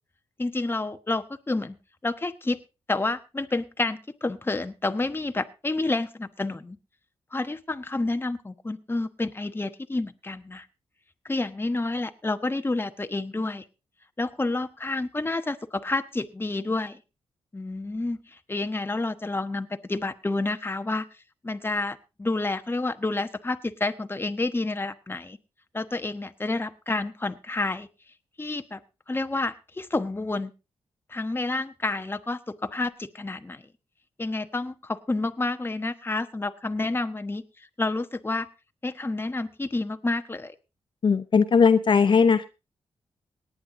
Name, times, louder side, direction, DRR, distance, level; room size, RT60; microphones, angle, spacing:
voice 1, 0.4-1.8 2.0-2.6 2.9-6.8 7.3-10.7 11.2-13.6 14.2-17.0 17.5-21.1 21.4-25.4 25.7-27.9 28.4-28.8 29.1-30.5 31.1-33.6 34.2-37.4 37.8-38.5 38.8-40.5, left 2 dB, 20° left, 9 dB, 1.1 m, -29 dB
voice 2, 41.0-42.5, left 5 dB, 50° left, 9 dB, 0.8 m, -19 dB
18.5 x 9.6 x 3.8 m, 0.29 s
cardioid pair, 60°, 10 cm